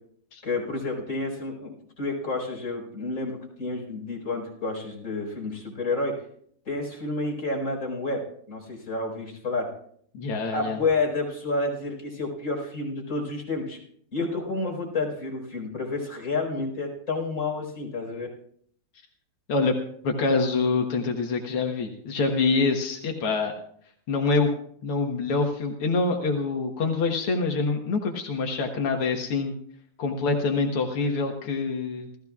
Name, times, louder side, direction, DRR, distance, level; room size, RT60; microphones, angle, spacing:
voice 1, 0.4-1.7 2.0-6.1 6.6-8.2 8.5-9.7 10.5-13.8 14.1-18.3, left 3 dB, 35° left, 0 dB, 5.0 m, -30 dB
voice 2, 10.1-10.8 19.5-19.7 20.0-23.5 24.1-24.5 24.8-29.6 30.0-32.1, left 4 dB, 90° left, 2 dB, 2.3 m, -25 dB
29.0 x 14.5 x 2.4 m, 0.64 s
omnidirectional pair, 2.4 m